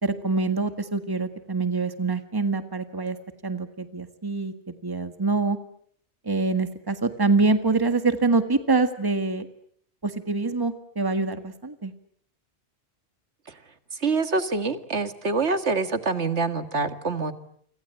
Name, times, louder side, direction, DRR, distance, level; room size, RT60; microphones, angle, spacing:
voice 1, 0.0-3.2 3.4-5.6 6.2-9.5 10.0-11.9, right 3 dB, 20° right, 9 dB, 1.7 m, -25 dB
voice 2, 14.0-17.3, right 3 dB, 80° right, 10 dB, 2.2 m, -25 dB
29.0 x 26.0 x 7.9 m, 0.64 s
omnidirectional pair, 1.1 m